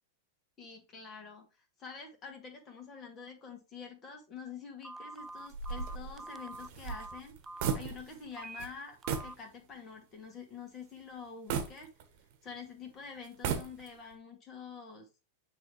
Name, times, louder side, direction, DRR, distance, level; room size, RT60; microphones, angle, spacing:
voice 1, 0.6-1.5 1.8-7.4 7.7-9.0 9.2-11.9 12.4-15.1, left 5 dB, 30° left, 3 dB, 2.2 m, -47 dB
Telephone, 4.8-7.8 8.3-8.6 9.0-9.3, right 2 dB, 15° right, 0.3 m, -46 dB
sound 1, 5.5-8.3 8.6-8.7 9.1-9.4 9.9-10.0 11.5-12.5 13.2-14.1, right 6 dB, 50° right, 1.2 m, -36 dB
9.3 x 3.4 x 3.3 m, 0.30 s
figure-of-eight pair, 90°, 0 cm